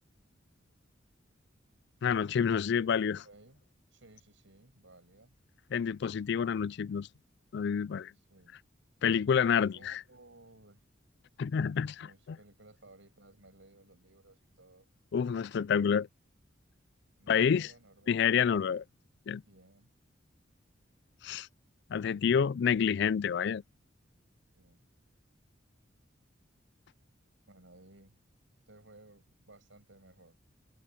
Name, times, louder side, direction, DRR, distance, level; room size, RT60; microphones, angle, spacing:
voice 1, 2.0-3.2 5.7-7.1 7.5-8.1 9.0-10.0 11.4-12.1 15.1-16.1 17.3-17.7 18.1-18.8 19.3-19.4 21.2-21.5 21.9-23.6, left 7 dB, 60° left, 0.4 m, -28 dB
voice 2, 2.8-3.6 3.9-5.3 8.1-8.6 9.7-10.8 12.0-14.9 17.2-18.4 19.4-19.9 24.5-24.9 27.5-28.2 28.7-30.4, right 2 dB, 70° right, 7.5 m, -58 dB
head